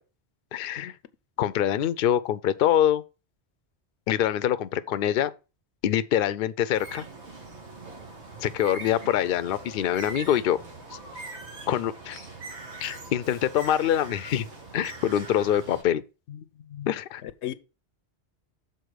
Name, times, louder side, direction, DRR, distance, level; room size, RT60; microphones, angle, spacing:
voice 1, 0.5-0.9 1.4-3.0 4.1-5.3 5.8-7.1 8.4-10.6 11.7-12.3 12.8-14.5 14.7-16.0 16.9-17.2, left 10 dB, 60° left, 0.7 m, -25 dB
Bird, 6.7-15.8, right 3 dB, 80° right, 2.0 m, -42 dB
voice 2, 16.3-17.0 17.2-17.5, left 12 dB, 85° left, 0.9 m, -37 dB
6.8 x 4.1 x 6.3 m
omnidirectional pair, 1.1 m